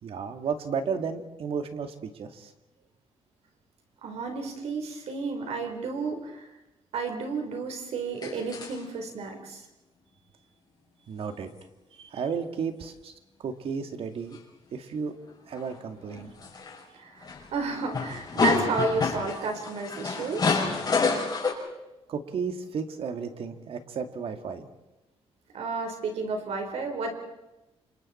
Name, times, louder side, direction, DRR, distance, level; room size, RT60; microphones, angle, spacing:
voice 1, 0.0-2.5 11.1-11.5 11.9-13.1 13.4-14.4 14.7-15.1 15.5-16.3 22.1-24.7, right 6 dB, 60° right, 7 dB, 2.1 m, -33 dB
voice 2, 4.0-6.5 6.9-9.6 16.9-20.6 25.5-27.1, right 4 dB, 80° right, 4 dB, 4.3 m, -32 dB
sound 1, 8.2-8.8 14.3-14.4 15.6-15.7 16.1-16.8 17.2-17.5 17.7-21.5, left 4 dB, 40° left, 5.9 m, -28 dB
29.0 x 27.0 x 4.4 m, 0.98 s
cardioid pair, 135°, 11 cm